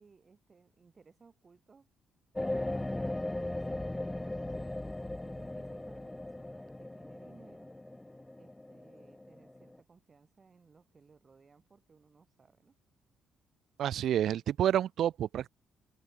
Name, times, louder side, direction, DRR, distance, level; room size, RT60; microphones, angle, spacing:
voice 1, 0.0-1.9 2.4-4.7 5.2-7.7 8.4-12.8, right 5 dB, 30° right, 7.9 m, -61 dB
sound 1, 2.3-9.8, left 1 dB, 10° left, 0.7 m, -38 dB
voice 2, 13.8-15.5, right 10 dB, 65° right, 0.6 m, -29 dB
cardioid pair, 125°, 0 cm